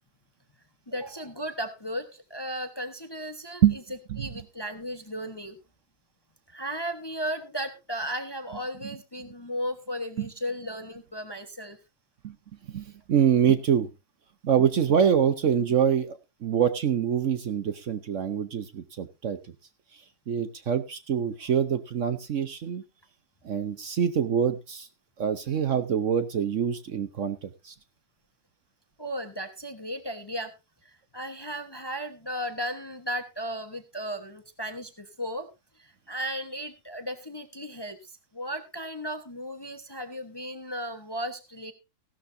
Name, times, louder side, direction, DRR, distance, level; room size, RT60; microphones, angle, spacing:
voice 1, 0.9-3.6 4.2-5.6 6.5-11.8 29.0-30.5 30.8-35.5 35.8-41.7, equal, 20° left, 8 dB, 0.9 m, -35 dB
voice 2, 12.7-13.9 14.4-19.4 19.9-22.8 23.4-24.9 25.2-27.7, right 8 dB, 55° right, 11 dB, 1.0 m, -25 dB
15.5 x 12.5 x 2.7 m, 0.26 s
omnidirectional pair, 1.7 m